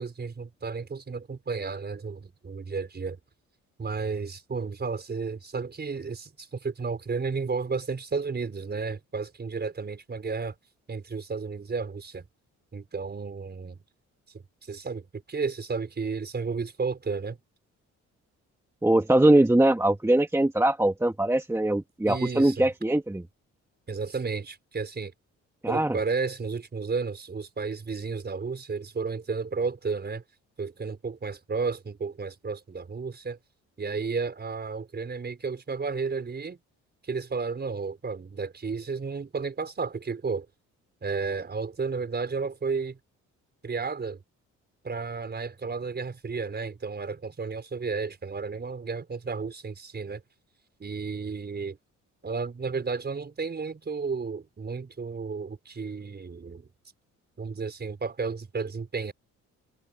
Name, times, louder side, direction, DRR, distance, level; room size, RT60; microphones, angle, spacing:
voice 1, 0.0-3.2 3.8-10.5 10.9-12.3 12.7-13.8 14.7-17.4 22.1-22.7 23.9-25.1 25.7-30.2 30.6-33.4 33.8-36.6 37.0-40.5 41.0-43.0 43.6-44.2 44.8-50.2 50.8-51.8 52.2-56.7 57.4-59.1, right 4 dB, 35° right, 5.1 m, -32 dB
voice 2, 18.8-23.2 25.6-26.0, right 1 dB, 10° right, 1.5 m, -22 dB
cardioid pair, 90°, 30 cm